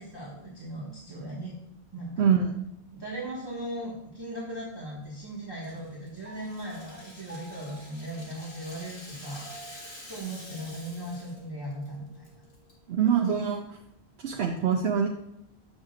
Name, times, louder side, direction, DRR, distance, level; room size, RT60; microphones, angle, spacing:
voice 1, 0.0-1.5 1.9-2.3 2.9-9.8 10.1-12.4, right 1 dB, 20° right, -8 dB, 1.5 m, -38 dB
voice 2, 2.2-2.5 12.9-13.8 14.2-15.1, right 7 dB, 75° right, 2 dB, 0.9 m, -24 dB
Rattle (instrument), 5.6-11.4 11.7-11.9 12.2-12.7, left 1 dB, 55° left, 2.1 m, -48 dB
Piano, 6.2-12.9, right 2 dB, 10° left, 1.6 m, -53 dB
7.8 x 6.3 x 2.4 m, 0.82 s
omnidirectional pair, 1.1 m